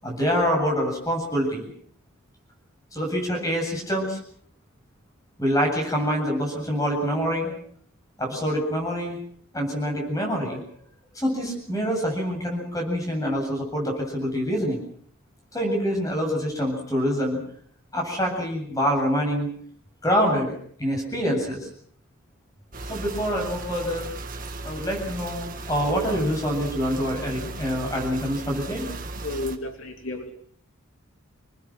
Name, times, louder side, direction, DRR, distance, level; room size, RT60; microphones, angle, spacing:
voice 1, 0.0-1.7 2.9-4.2 5.4-7.5 8.2-9.2 9.5-10.6 11.1-14.8 15.5-17.4 17.9-19.5 20.0-20.5 20.8-21.7 22.9-24.1 24.6-28.9, equal, 15° left, 1 dB, 8.0 m, -26 dB
sound 1, 22.7-29.6, right 2 dB, 40° right, 2.1 m, -36 dB
voice 2, 28.9-30.3, left 2 dB, 75° left, 4 dB, 2.9 m, -35 dB
27.5 x 21.0 x 6.3 m, 0.62 s
head